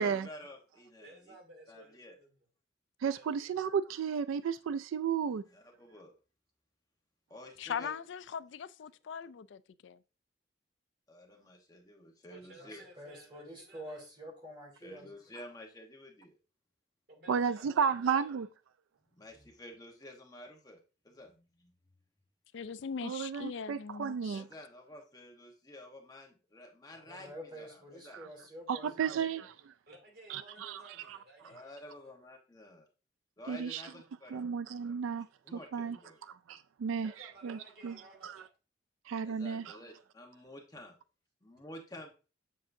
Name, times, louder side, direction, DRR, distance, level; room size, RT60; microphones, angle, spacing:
voice 1, 0.0-1.3 1.7-2.2 5.5-6.2 7.3-7.9 11.1-12.9 14.8-16.4 19.1-20.8 21.0-21.7 24.3-28.2 31.4-32.8 33.4-34.5 34.8-34.9 35.4-36.2 39.2-41.0 41.4-42.1, left 1 dB, 20° left, 1.1 m, -51 dB
voice 2, 1.0-2.3 3.1-3.5 12.3-14.0 17.1-18.4 29.9-32.1 37.0-38.5, right 2 dB, 55° right, 2.8 m, -57 dB
voice 3, 3.0-5.4 17.3-18.5 23.0-24.5 28.7-29.5 30.3-30.8 31.1-31.2 33.5-33.8 34.3-35.3 35.5-36.0 36.5-37.1 37.4-38.0 38.2-38.4 39.1-39.8, right 6 dB, 90° right, 0.3 m, -33 dB
voice 4, 7.6-9.9 22.5-24.4, left 7 dB, 70° left, 0.4 m, -40 dB
voice 5, 12.6-15.2 26.9-29.5, equal, 25° right, 3.4 m, -48 dB
7.5 x 7.4 x 2.6 m
head